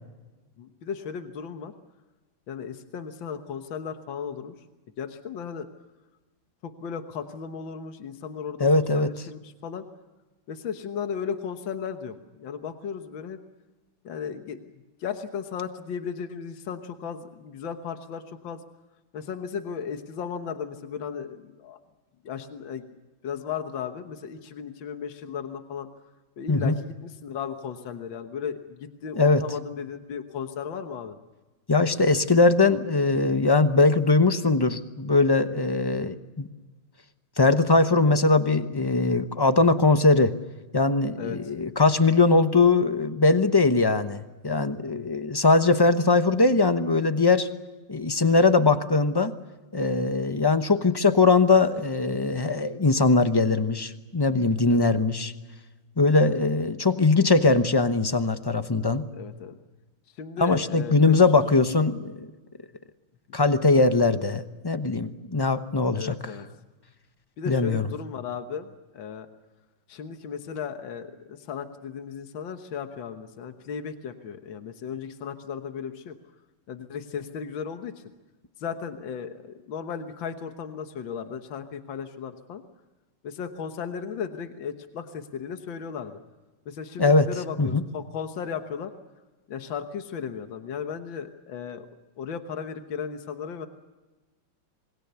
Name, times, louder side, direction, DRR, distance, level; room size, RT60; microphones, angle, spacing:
voice 1, 0.6-1.7 2.5-4.5 5.0-5.7 6.6-9.8 10.5-13.4 14.0-14.6 15.0-18.6 19.1-21.8 22.2-22.8 23.2-25.9 26.4-31.2 41.2-41.5 54.7-54.9 59.1-59.6 60.2-61.2 63.3-63.4 65.9-66.5 67.4-69.3 69.9-76.2 76.7-78.0 78.6-82.6 83.2-86.2 86.7-88.9 89.5-91.9 92.2-93.7, left 7 dB, 75° left, 7 dB, 2.0 m, -35 dB
voice 2, 8.6-9.1 26.5-26.7 29.1-29.4 31.7-36.5 37.4-40.3 40.7-47.5 47.9-49.3 49.7-55.3 56.0-59.1 60.4-62.3 63.3-66.2 67.5-67.9 87.0-87.3 87.6-87.8, left 3 dB, 25° left, 10 dB, 0.5 m, -21 dB
27.0 x 22.0 x 6.9 m, 1.2 s
omnidirectional pair, 2.1 m